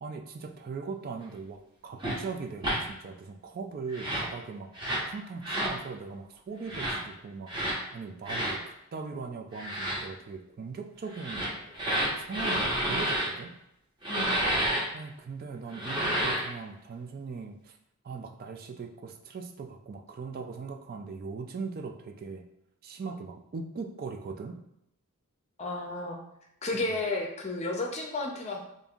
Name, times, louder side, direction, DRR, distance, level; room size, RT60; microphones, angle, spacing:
voice 1, 0.0-4.7 5.1-7.5 7.9-11.5 12.2-13.5 14.9-17.8 18.0-22.4 22.8-24.6, right 4 dB, 40° right, 3 dB, 0.3 m, -39 dB
sound 1, 2.0-2.2 2.6-2.8 3.9-4.3 4.7-5.1 5.4-5.7 6.6-7.0 7.5-7.8 8.2-8.6 9.5-10.0 11.1-13.3 14.0-14.8 15.7-16.5, right 1 dB, 20° right, 1.0 m, -29 dB
voice 2, 25.6-26.2 26.6-28.6, left 2 dB, 30° left, 1 dB, 0.5 m, -32 dB
5.2 x 2.6 x 2.4 m, 0.80 s
head